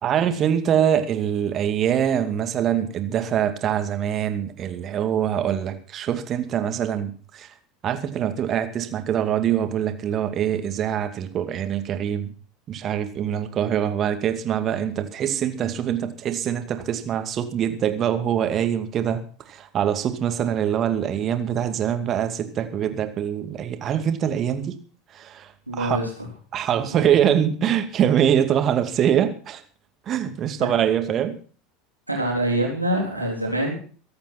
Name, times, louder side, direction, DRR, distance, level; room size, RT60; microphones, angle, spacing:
voice 1, 0.0-7.5 7.8-12.3 12.7-19.2 19.5-24.7 25.1-26.0 26.5-29.6 30.1-31.4, right 9 dB, 35° right, 8 dB, 2.4 m, -24 dB
voice 2, 25.7-26.3 26.9-27.1 30.6-30.7 32.1-33.8, right 1 dB, 90° right, -2 dB, 4.1 m, -25 dB
23.0 x 8.8 x 6.0 m, 0.42 s
figure-of-eight pair, 75°, 0 cm